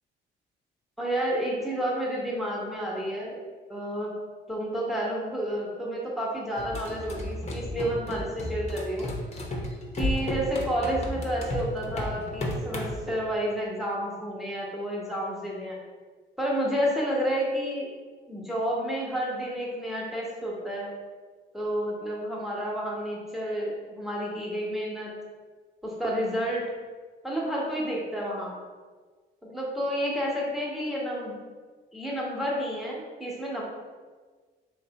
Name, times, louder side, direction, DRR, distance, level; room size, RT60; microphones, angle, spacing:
voice 1, 1.0-3.4 3.7-4.1 4.5-9.1 10.0-15.8 16.4-17.9 18.3-20.9 21.5-25.1 25.8-26.7 27.2-28.5 29.4-31.3 31.9-33.6, equal, ahead, -4 dB, 1.2 m, -30 dB
sound 1, 6.6-13.0, left 1 dB, 35° left, 0.9 m, -33 dB
3.3 x 3.2 x 4.1 m, 1.4 s
cardioid pair, 90°, 20 cm